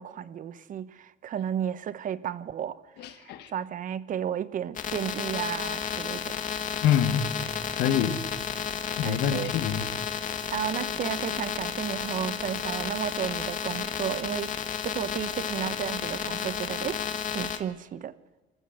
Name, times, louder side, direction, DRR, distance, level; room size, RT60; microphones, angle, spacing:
voice 1, 0.0-2.8 3.1-3.2 3.5-6.3 9.0-9.5 10.4-14.5 14.8-17.0 17.3-18.1, right 9 dB, 50° right, 1.0 m, -33 dB
voice 2, 3.0-3.5 6.8-7.2 7.7-8.2 9.0-9.9, left 9 dB, 80° left, 1.7 m, -26 dB
sound 1, 4.7-17.6, left 7 dB, 50° left, 1.7 m, -32 dB
26.0 x 14.0 x 7.9 m
cardioid pair, 110°, 17 cm